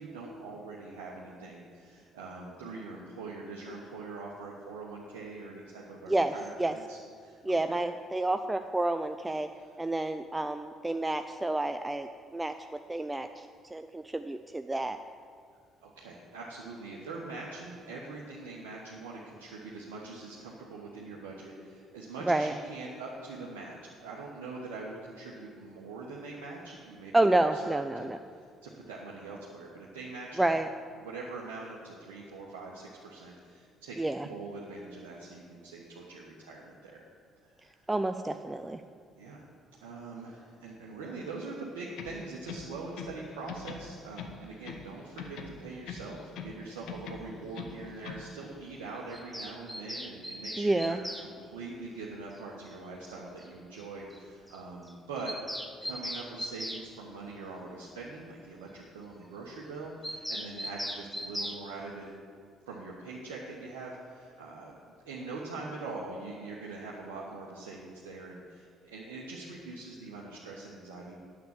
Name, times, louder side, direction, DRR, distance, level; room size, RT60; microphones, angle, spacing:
voice 1, 0.0-7.8 9.5-9.8 15.8-27.1 27.5-30.4 31.0-34.0 34.2-37.0 37.4-37.9 39.2-39.4 39.8-62.1 62.7-64.8 65.0-71.2, right 3 dB, 75° right, -4 dB, 1.2 m, -43 dB
voice 2, 6.1-6.8 7.4-9.5 9.8-15.0 22.3-22.5 27.1-28.2 30.4-30.7 34.0-34.3 37.9-38.8 50.6-51.0, right 2 dB, 15° right, 8 dB, 0.4 m, -29 dB
sound 1, 41.9-43.2 43.5-44.9 45.2-46.6 46.9-48.3, left 5 dB, 60° left, 0.9 m, -42 dB
Bird vocalization bird call bird song, 49.1-51.3 52.7-52.8 53.1-53.2 53.4-53.5 53.8-53.9 54.1-54.2 54.5-54.6 54.9-56.9 60.0-61.6, equal, ahead, 1.0 m, -38 dB
9.4 x 7.3 x 7.3 m, 2.2 s
figure-of-eight pair, 50°, 0 cm